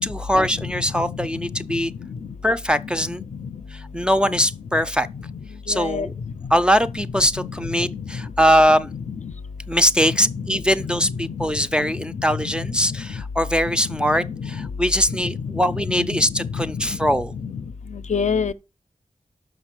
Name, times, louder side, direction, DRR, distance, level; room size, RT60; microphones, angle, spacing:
voice 1, 0.0-1.9 2.4-3.2 3.7-5.1 5.7-6.1 6.5-8.9 9.7-17.3, equal, 5° right, 0.4 m, -21 dB
voice 2, 5.7-6.1 7.4-7.5 7.9-8.0 8.9-9.3 10.3-10.6 11.0-11.5 11.8-11.9 14.0-14.7 15.2-15.4 15.7-16.7 17.4-17.6 18.1-18.5, left 6 dB, 65° left, 0.5 m, -28 dB
6.2 x 5.2 x 5.8 m
wide cardioid pair, 110°, 13 cm